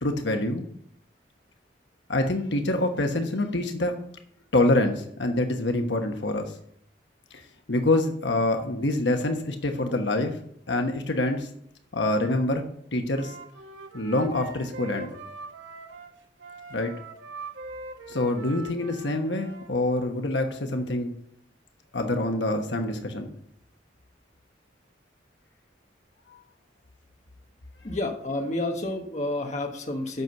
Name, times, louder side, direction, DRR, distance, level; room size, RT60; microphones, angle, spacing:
voice 1, 0.0-0.6 2.1-4.0 4.5-6.5 7.3-7.4 7.7-10.4 10.7-11.5 11.9-12.7 12.9-13.3 13.9-15.2 16.7-16.9 18.1-21.1 21.9-23.3, left 2 dB, 70° left, 4 dB, 1.2 m, -26 dB
Wind instrument woodwind instrument, 13.1-19.7, right 3 dB, 80° right, 1.3 m, -42 dB
voice 2, 27.8-30.2, left 2 dB, 40° left, 2 dB, 1.3 m, -30 dB
8.2 x 6.2 x 7.9 m, 0.66 s
head